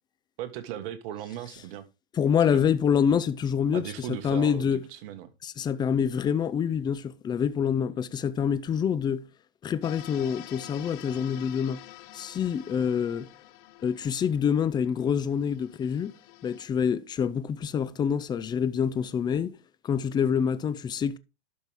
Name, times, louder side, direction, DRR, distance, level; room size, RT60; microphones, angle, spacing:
voice 1, 0.4-1.8 2.5-2.6 3.7-5.3, right 11 dB, 55° right, 1.6 m, -37 dB
voice 2, 2.2-4.8 5.4-9.2 9.6-11.8 12.1-13.3 13.8-16.1 16.4-19.6 19.8-21.2, left 7 dB, 15° left, 0.4 m, -26 dB
sound 1, 9.8-16.7, left 17 dB, 50° left, 0.9 m, -48 dB
12.0 x 6.1 x 3.4 m
hypercardioid pair, 130°, 33 cm